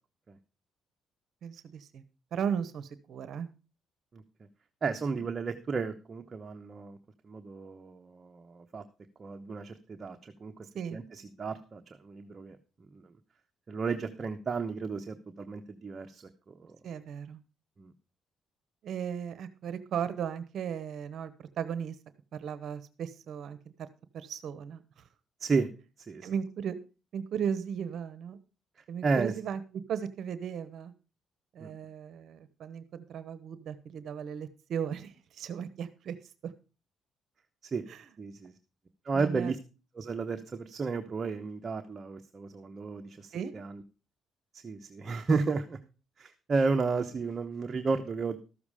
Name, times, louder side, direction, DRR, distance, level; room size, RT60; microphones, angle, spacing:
voice 1, 1.4-2.0 2.3-3.5 5.0-5.1 10.7-11.0 16.8-17.4 18.8-22.0 22.3-23.9 24.1-25.0 26.2-26.8 27.1-28.4 28.9-29.6 29.9-30.9 31.5-36.2 36.4-36.5 37.9-38.0 39.1-39.5 43.3-43.5, right 8 dB, 70° right, 14 dB, 0.9 m, -36 dB
voice 2, 4.8-7.0 7.2-8.8 9.2-10.5 10.9-12.6 12.9-13.0 13.7-16.8 17.8-17.9 25.4-25.7 26.1-26.3 29.0-29.3 31.6-31.7 37.6-37.8 38.2-38.5 39.0-39.6 39.9-43.8 44.5-45.8 46.2-48.4, right 4 dB, 40° right, 6 dB, 1.0 m, -33 dB
13.5 x 7.1 x 4.9 m, 0.33 s
cardioid pair, 90°, 0 cm